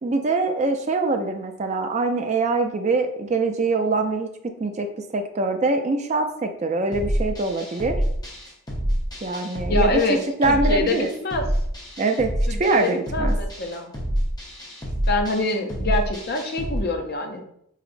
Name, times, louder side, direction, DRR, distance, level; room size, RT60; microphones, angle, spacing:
voice 1, 0.0-8.0 9.2-10.0 10.4-11.1 12.0-12.3 12.6-13.3, right 3 dB, 30° right, 6 dB, 0.3 m, -23 dB
sound 1, 6.9-16.8, equal, 15° left, 0.8 m, -27 dB
voice 2, 9.7-10.2 10.5-11.5 12.5-13.9 15.1-17.4, left 2 dB, 45° left, 4 dB, 0.5 m, -25 dB
4.8 x 2.9 x 2.5 m, 0.73 s
head